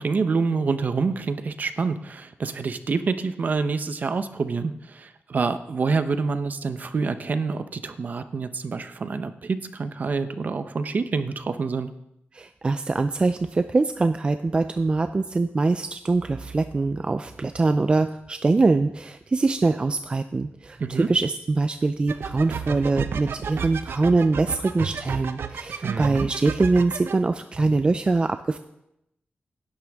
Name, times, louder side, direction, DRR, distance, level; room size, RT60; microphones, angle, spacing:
voice 1, 0.0-11.9 20.8-21.1 25.8-26.3, right 4 dB, 45° right, 10 dB, 0.8 m, -27 dB
voice 2, 12.3-28.6, right 3 dB, 25° right, 9 dB, 0.4 m, -23 dB
sound 1, 22.1-27.2, right 6 dB, 80° right, 0.7 m, -32 dB
17.5 x 11.0 x 3.5 m, 0.83 s
wide cardioid pair, 165°, 4 cm